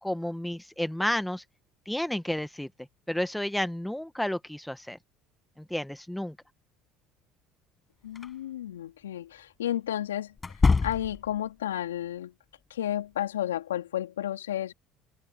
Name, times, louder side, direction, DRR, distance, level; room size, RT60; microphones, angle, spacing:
voice 1, 0.0-1.4 1.9-2.7 3.1-5.0 5.7-6.3, left 1 dB, 5° left, 1.5 m, -31 dB
voice 2, 8.0-10.3 10.8-12.3 12.7-14.7, left 11 dB, 85° left, 2.6 m, -32 dB
sound 1, 8.2-8.3 10.4-11.4, left 4 dB, 25° left, 7.6 m, -25 dB
hypercardioid pair, 70°, 0 cm